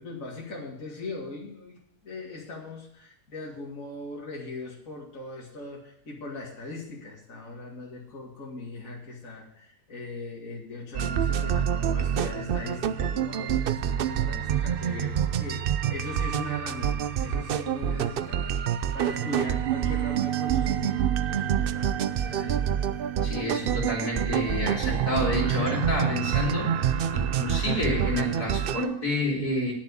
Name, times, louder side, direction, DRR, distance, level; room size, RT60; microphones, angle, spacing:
voice 1, 0.0-18.6 18.9-21.0 21.3-22.7, left 3 dB, 60° left, -3 dB, 2.7 m, -39 dB
sound 1, 10.9-28.8, right 9 dB, 85° right, 0.5 m, -27 dB
voice 2, 23.2-29.7, left 1 dB, 90° left, -2 dB, 3.7 m, -29 dB
9.5 x 7.3 x 8.3 m, 0.71 s
omnidirectional pair, 1.6 m